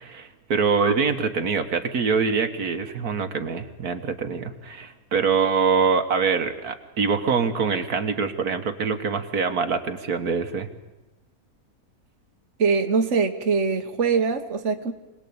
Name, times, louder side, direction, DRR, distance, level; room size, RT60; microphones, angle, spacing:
voice 1, 0.0-10.7, right 5 dB, 80° right, 7 dB, 2.0 m, -24 dB
voice 2, 12.6-14.9, right 5 dB, 55° right, 6 dB, 1.6 m, -22 dB
26.0 x 19.5 x 8.7 m, 1.0 s
omnidirectional pair, 1.6 m